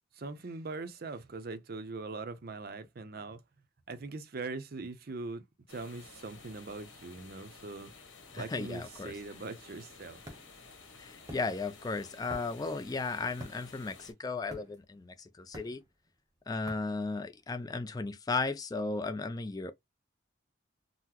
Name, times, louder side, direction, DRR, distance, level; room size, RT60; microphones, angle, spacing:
voice 1, 0.1-3.4 3.9-5.4 5.7-7.9 8.4-10.2, right 3 dB, 50° right, 0.5 m, -41 dB
sound 1, 5.7-14.1, left 4 dB, 85° left, 1.2 m, -53 dB
voice 2, 8.3-9.2 11.0-15.8 16.5-19.7, left 3 dB, 20° left, 0.3 m, -35 dB
sound 2, 10.2-17.8, equal, 15° right, 0.7 m, -50 dB
3.8 x 2.0 x 2.9 m
head